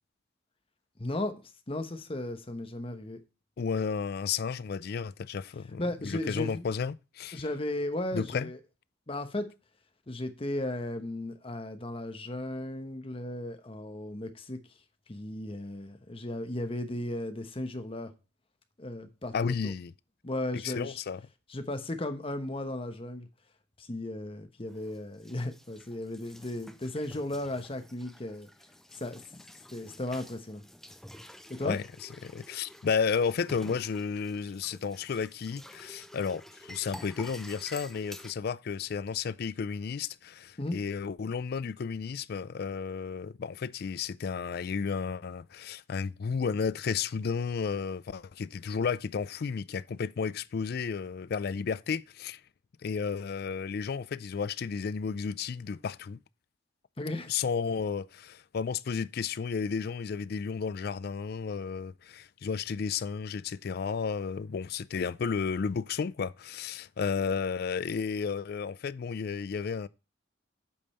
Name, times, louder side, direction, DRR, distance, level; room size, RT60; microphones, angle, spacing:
voice 1, 1.0-1.3 1.7-3.2 5.8-6.6 7.3-8.6 9.1-9.5 10.1-14.6 15.1-18.1 18.8-19.7 20.2-21.0 21.5-23.3 23.8-28.5 29.0-29.4 29.7-30.6 31.6-31.8 40.6-40.8 57.0-57.3, left 1 dB, 30° left, 1.0 m, -35 dB
voice 2, 3.6-7.4 8.1-8.5 19.3-19.9 20.5-21.2 31.6-52.4 52.8-56.2 57.3-69.9, left 6 dB, 50° left, 0.4 m, -33 dB
sound 1, 24.7-38.3, equal, ahead, 0.5 m, -50 dB
8.6 x 5.3 x 4.2 m
head